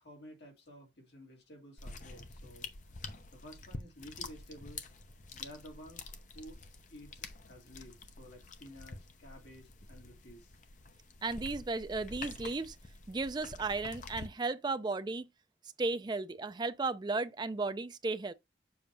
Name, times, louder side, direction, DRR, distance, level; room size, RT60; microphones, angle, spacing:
voice 1, 0.0-2.7 3.3-4.9 5.3-10.6, equal, 65° left, 2.3 m, -53 dB
sound 1, 1.8-14.3, left 3 dB, 45° left, 0.7 m, -48 dB
voice 2, 11.2-12.8 13.1-15.3 15.8-18.3, right 3 dB, 25° right, 0.4 m, -35 dB
7.1 x 2.7 x 5.2 m
head